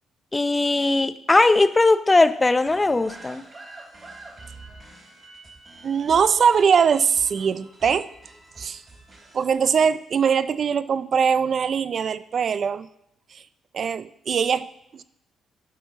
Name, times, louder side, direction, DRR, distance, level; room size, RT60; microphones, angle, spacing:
voice 1, 0.3-3.4, left 2 dB, 20° left, 13 dB, 0.6 m, -19 dB
sound 1, 2.7-9.5, right 2 dB, 35° right, 3.5 m, -46 dB
voice 2, 5.8-8.1 8.6-8.8 9.3-12.9 13.7-14.7 14.9-15.0, right 6 dB, 55° right, 15 dB, 0.5 m, -21 dB
11.0 x 5.8 x 6.0 m, 0.79 s
cardioid pair, 80°, 0 cm